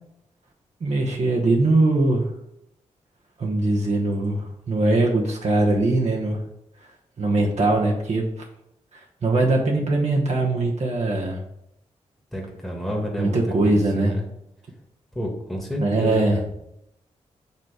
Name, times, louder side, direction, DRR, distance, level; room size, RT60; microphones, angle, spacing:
voice 1, 0.8-2.3 3.4-6.4 7.2-8.3 8.9-11.4 13.2-14.1 15.8-16.4, right 2 dB, 60° right, -1 dB, 1.1 m, -21 dB
voice 2, 12.3-14.2 15.1-16.4, equal, ahead, -1 dB, 1.5 m, -30 dB
6.7 x 3.2 x 4.8 m, 0.80 s
cardioid pair, 55°, 13 cm